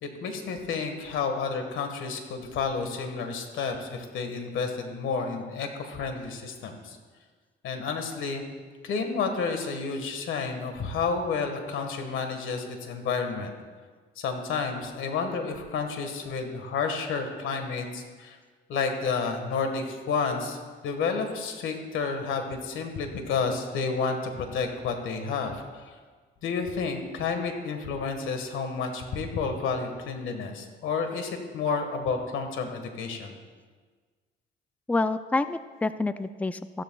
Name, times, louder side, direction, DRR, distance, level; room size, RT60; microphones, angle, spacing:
voice 1, 0.0-7.0 7.6-8.4 8.8-13.5 14.2-18.4 18.7-20.6 20.8-26.0 26.4-33.4, left 5 dB, 80° left, 5 dB, 1.6 m, -30 dB
voice 2, 34.9-36.8, left 3 dB, 5° left, 12 dB, 0.4 m, -28 dB
15.0 x 13.0 x 2.3 m, 1.5 s
cardioid pair, 90°, 20 cm